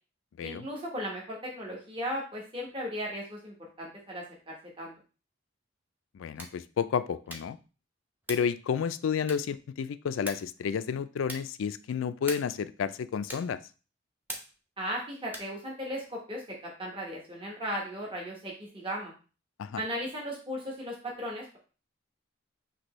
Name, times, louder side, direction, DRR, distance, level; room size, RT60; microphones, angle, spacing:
voice 1, 0.4-4.9 14.8-19.1 19.8-21.6, equal, 25° right, -2 dB, 1.1 m, -36 dB
voice 2, 6.1-7.6 8.3-13.6 19.6-19.8, left 7 dB, 85° left, 14 dB, 0.3 m, -31 dB
sound 1, 6.3-6.7 7.2-7.6 8.2-8.6 9.2-9.6 10.2-10.6 11.2-11.6 12.2-12.6 13.3-13.6 14.3-14.7 15.3-15.6, right 1 dB, 10° right, 0.8 m, -42 dB
6.0 x 2.9 x 3.0 m, 0.35 s
head